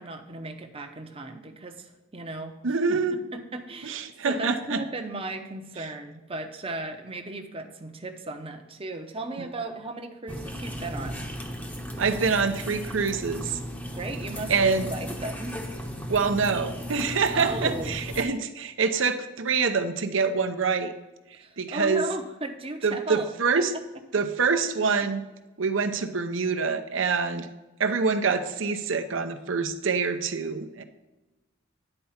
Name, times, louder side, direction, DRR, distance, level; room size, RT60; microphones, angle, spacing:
voice 1, 0.0-2.6 2.9-3.0 3.3-11.3 13.9-15.5 17.3-18.0 21.4-23.3, right 2 dB, 30° right, 5 dB, 0.8 m, -36 dB
voice 2, 2.6-3.2 3.8-4.8 5.8-5.9 12.0-13.6 14.5-14.9 16.1-20.9 21.6-22.0 22.8-23.7 24.1-25.2 25.6-27.5 27.8-30.8, right 5 dB, 70° right, 7 dB, 0.8 m, -25 dB
sound 1, 10.3-18.2, equal, 10° left, 0.8 m, -35 dB
10.0 x 4.5 x 5.7 m, 1.0 s
head